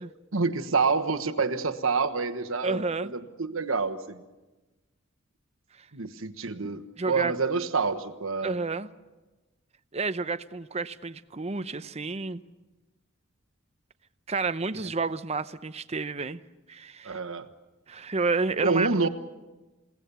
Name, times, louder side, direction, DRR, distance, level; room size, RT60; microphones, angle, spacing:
voice 1, 0.3-4.2 5.9-8.5 17.0-17.5 18.6-19.1, right 4 dB, 80° right, 1.3 m, -27 dB
voice 2, 2.6-3.1 7.0-7.3 8.4-8.9 9.9-12.4 14.3-16.4 16.7-17.2 17.9-18.9, right 4 dB, 30° right, 0.7 m, -30 dB
29.0 x 17.5 x 6.9 m
head